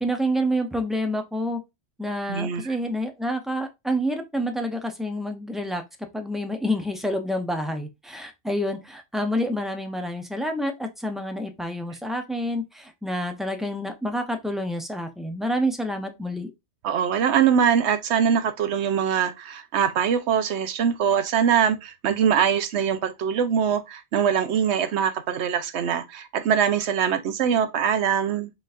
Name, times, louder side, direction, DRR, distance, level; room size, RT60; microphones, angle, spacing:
voice 1, 0.0-1.6 2.0-5.8 6.1-16.5, equal, ahead, 0.4 m, -28 dB
voice 2, 2.3-2.8 16.8-28.5, right 8 dB, 85° right, 1.0 m, -23 dB
4.0 x 4.0 x 2.4 m
omnidirectional pair, 1.1 m